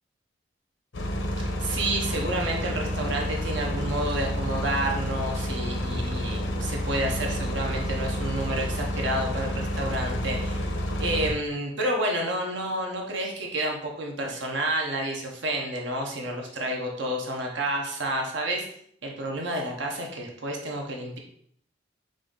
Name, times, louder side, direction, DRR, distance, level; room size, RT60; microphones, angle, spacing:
sound 1, 0.9-11.3, equal, 80° left, 0.8 m, -29 dB
voice 1, 1.4-10.6 11.0-18.7 19.0-21.2, right 1 dB, 70° right, 1 dB, 0.8 m, -30 dB
5.0 x 2.6 x 3.8 m, 0.66 s
head